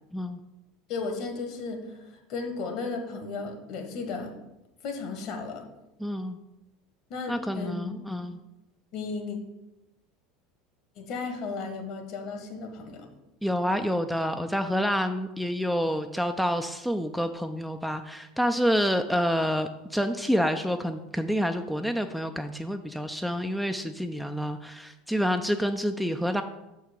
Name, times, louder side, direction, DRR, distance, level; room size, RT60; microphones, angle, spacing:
voice 1, 0.9-2.0 2.3-4.3 4.8-5.7 7.1-8.3 8.9-9.4 11.0-13.1, left 4 dB, 55° left, 5 dB, 1.4 m, -35 dB
voice 2, 6.0-6.4 7.3-8.4 13.4-26.4, equal, ahead, 7 dB, 0.4 m, -28 dB
6.4 x 4.6 x 5.3 m, 0.96 s
figure-of-eight pair, 75°, 0 cm